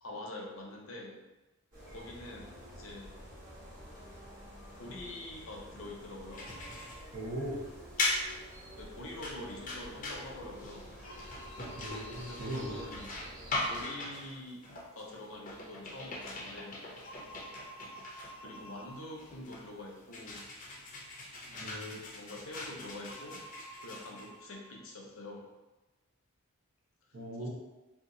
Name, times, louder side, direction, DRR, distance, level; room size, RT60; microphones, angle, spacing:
voice 1, 0.0-1.2 1.9-3.1 4.7-6.5 8.7-10.9 12.3-13.2 13.6-14.7 14.9-16.8 18.4-20.5 21.4-23.4 23.8-25.5 27.4-27.5, left 1 dB, 75° left, -1 dB, 0.7 m, -46 dB
sound 1, 1.7-13.8, equal, 35° right, 1.3 m, -49 dB
sound 2, 6.3-24.7, left 2 dB, 35° left, 0.5 m, -40 dB
voice 2, 7.1-7.6 11.8-12.8 21.6-22.0 27.1-27.5, right 1 dB, 65° right, -10 dB, 0.8 m, -39 dB
2.8 x 2.4 x 3.7 m, 1.1 s
head